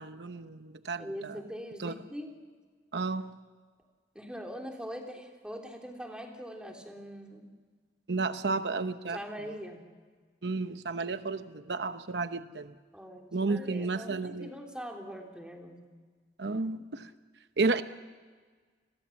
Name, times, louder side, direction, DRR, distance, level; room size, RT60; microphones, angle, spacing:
voice 1, 0.0-1.1 1.8-1.9 2.9-3.3 8.1-9.2 10.4-12.7 13.3-14.5 16.4-17.1 17.6-17.8, right 3 dB, 75° right, 10 dB, 0.8 m, -32 dB
voice 2, 1.0-2.4 4.1-7.5 9.1-9.8 12.9-15.8, equal, 5° right, 2 dB, 3.3 m, -42 dB
29.0 x 21.5 x 7.2 m, 1.5 s
head